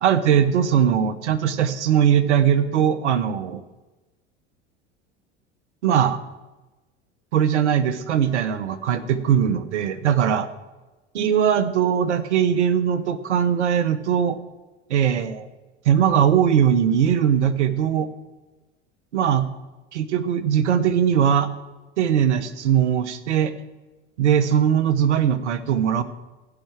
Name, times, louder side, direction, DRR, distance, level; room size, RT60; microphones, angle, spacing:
voice 1, 0.0-3.6 5.8-6.2 7.3-10.5 11.1-14.4 14.9-15.5 15.9-18.1 19.1-19.5 19.9-21.5 22.0-23.5 24.2-26.0, right 8 dB, 85° right, 13 dB, 1.0 m, -20 dB
15.5 x 5.8 x 7.4 m, 1.1 s
hypercardioid pair, 75°, 34 cm